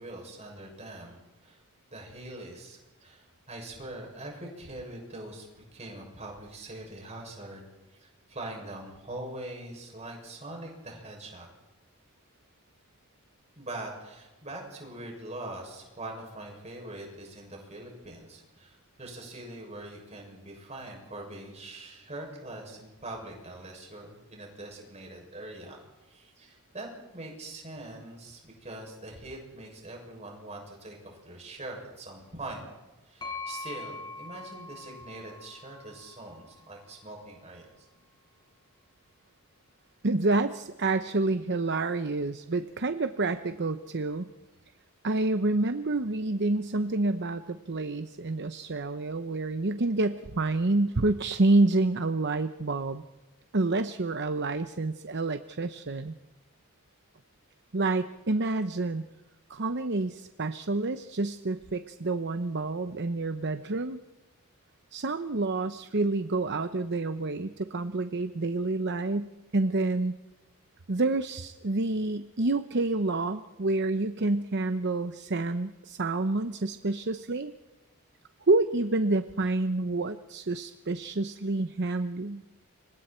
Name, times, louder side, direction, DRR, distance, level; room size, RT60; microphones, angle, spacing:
voice 1, 0.0-1.6 1.9-7.6 7.9-11.5 13.6-25.8 26.0-32.7 33.0-37.9, right 1 dB, 30° right, 0 dB, 7.1 m, -43 dB
sound 1, 33.2-37.0, left 3 dB, 20° left, 6.5 m, -42 dB
voice 2, 40.0-44.3 45.0-53.0 53.5-56.1 57.7-59.0 59.5-64.0 64.9-70.1 70.9-77.5 78.5-82.4, right 2 dB, 50° right, 9 dB, 0.9 m, -28 dB
30.0 x 25.5 x 4.5 m, 1.1 s
head